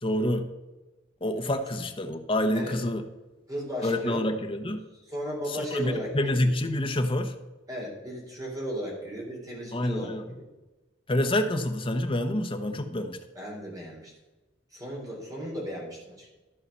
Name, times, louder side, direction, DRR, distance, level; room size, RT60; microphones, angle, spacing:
voice 1, 0.0-0.5 1.2-3.0 3.8-4.8 5.5-7.3 9.7-10.2 11.1-13.2, left 1 dB, 30° left, 6 dB, 0.9 m, -27 dB
voice 2, 3.5-4.2 5.0-6.4 7.7-10.5 13.4-14.1 14.7-16.3, equal, 20° right, -2 dB, 3.7 m, -35 dB
13.5 x 5.7 x 5.5 m, 1.1 s
head